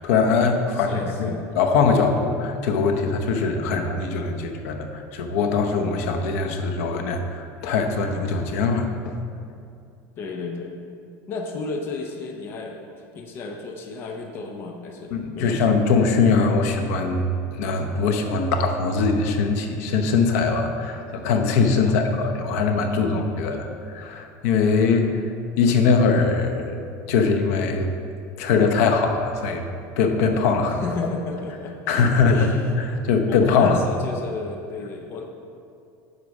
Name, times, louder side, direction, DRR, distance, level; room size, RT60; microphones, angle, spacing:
voice 1, 0.0-0.9 1.2-9.1 15.1-23.6 23.9-25.1 25.6-26.8 27.1-27.9 28.4-29.6 30.0-30.8 31.9-32.3 33.1-33.8, left 4 dB, 85° left, 5 dB, 0.8 m, -21 dB
voice 2, 0.7-1.5 10.2-10.8 11.3-15.6 21.9-22.3 23.0-23.8 30.8-31.9 32.3-32.8 33.3-35.2, left 3 dB, 30° left, 2 dB, 0.6 m, -33 dB
8.1 x 4.8 x 5.3 m, 2.5 s
cardioid pair, 175°, 7 cm